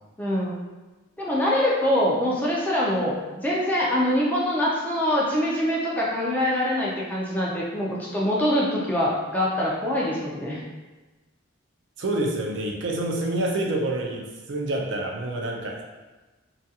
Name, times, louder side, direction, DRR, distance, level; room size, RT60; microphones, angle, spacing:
voice 1, 0.2-0.6 1.2-10.6, left 1 dB, 10° left, -6 dB, 0.3 m, -24 dB
voice 2, 12.0-15.8, right 1 dB, 60° right, 0 dB, 0.4 m, -27 dB
2.4 x 2.2 x 2.7 m, 1.2 s
head